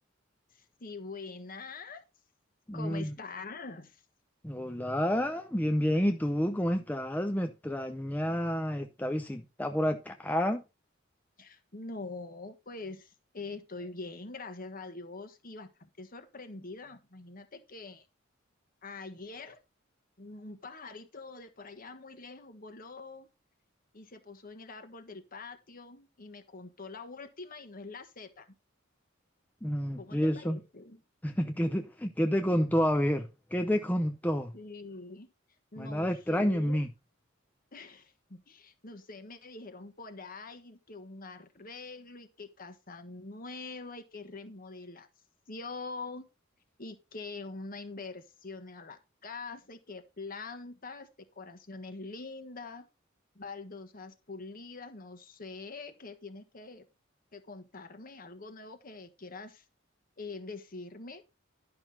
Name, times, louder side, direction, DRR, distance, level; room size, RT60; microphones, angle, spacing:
voice 1, 0.5-2.0 2.7-4.0 11.4-18.1 18.8-19.6 20.2-23.3 23.9-28.5 30.0-31.0 34.5-35.3 35.7-36.8 37.7-45.1 45.5-46.3 46.8-51.1 51.3-52.9 53.3-56.8 57.3-59.6 60.2-61.2, left 3 dB, 45° left, 1.5 m, -44 dB
voice 2, 2.7-3.1 4.4-10.6 29.6-30.6 31.2-34.5 35.8-36.9, equal, 10° left, 0.6 m, -29 dB
11.0 x 5.9 x 4.0 m
head